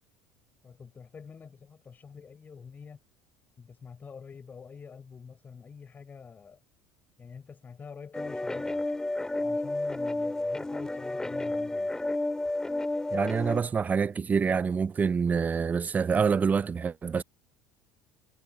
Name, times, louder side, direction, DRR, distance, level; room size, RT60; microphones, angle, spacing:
voice 1, 0.6-3.0 3.6-6.6 7.2-8.8 9.4-11.9, left 6 dB, 30° left, 5.5 m, -46 dB
sound 1, 8.1-13.6, left 2 dB, 10° left, 2.3 m, -31 dB
voice 2, 13.1-17.2, right 6 dB, 30° right, 0.6 m, -26 dB
hypercardioid pair, 80°, 6 cm